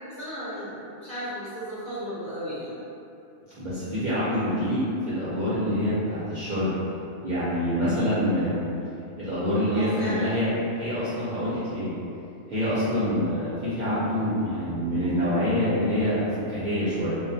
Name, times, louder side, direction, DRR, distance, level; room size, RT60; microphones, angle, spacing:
voice 1, 0.2-2.8 9.7-10.4 12.8-13.2, equal, 40° left, -13 dB, 0.9 m, -35 dB
voice 2, 3.6-6.8 7.2-8.6 9.2-11.9 12.5-17.2, equal, 50° right, -12 dB, 0.6 m, -26 dB
2.3 x 2.1 x 2.6 m, 2.7 s
omnidirectional pair, 1.2 m